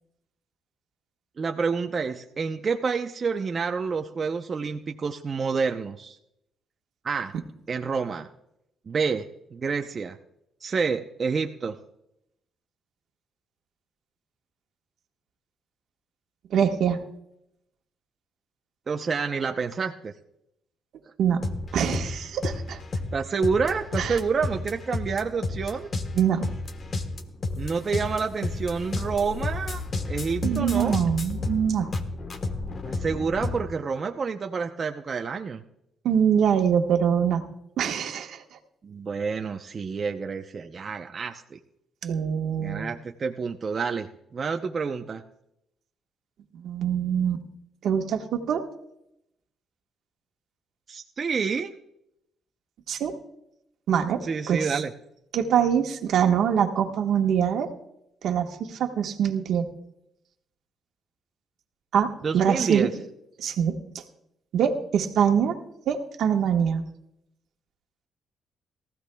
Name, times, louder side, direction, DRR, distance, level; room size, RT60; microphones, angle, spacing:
voice 1, 1.4-6.2 7.0-7.3 7.7-8.3 8.9-9.3 9.5-10.2 10.6-11.8 18.9-20.1 23.1-25.9 27.6-29.8 30.1-31.0 32.9-35.6 38.8-41.6 42.6-44.1 44.3-45.2 50.9-51.7 54.2-54.9 62.2-62.9, right 5 dB, 40° right, 4 dB, 0.7 m, -28 dB
voice 2, 16.5-17.0 21.2-21.4 21.7-22.8 24.0-24.2 26.1-26.5 30.4-31.9 36.0-37.4 37.8-38.4 42.0-42.8 46.5-47.4 47.8-48.7 52.9-53.1 53.9-54.7 55.3-57.7 58.2-59.7 61.9-62.9 63.4-64.0 64.5-65.6 65.9-66.8, right 8 dB, 70° right, 4 dB, 1.3 m, -24 dB
sound 1, 21.4-33.7, left 2 dB, 40° left, 1.3 m, -32 dB
22.5 x 15.0 x 2.3 m, 0.81 s
cardioid pair, 90°, 0 cm